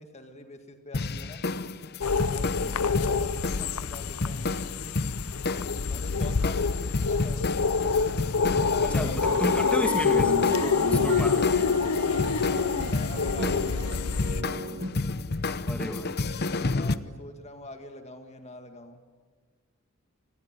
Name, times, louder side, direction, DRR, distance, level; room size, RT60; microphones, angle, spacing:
voice 1, 0.0-1.4 2.1-4.6 5.4-7.4 8.1-9.0 9.5-9.7 10.6-11.4 12.7-14.2 16.6-19.0, left 1 dB, 30° left, 6 dB, 2.1 m, -45 dB
sound 1, 0.9-17.0, left 3 dB, 50° left, 0.9 m, -31 dB
sound 2, 2.0-14.4, left 5 dB, 80° left, 0.7 m, -27 dB
voice 2, 8.8-11.6 15.7-16.3, left 1 dB, 5° left, 5 dB, 2.1 m, -33 dB
sound 3, 9.0-14.9, right 1 dB, 55° right, 2.5 m, -36 dB
27.5 x 20.5 x 9.1 m, 1.5 s
head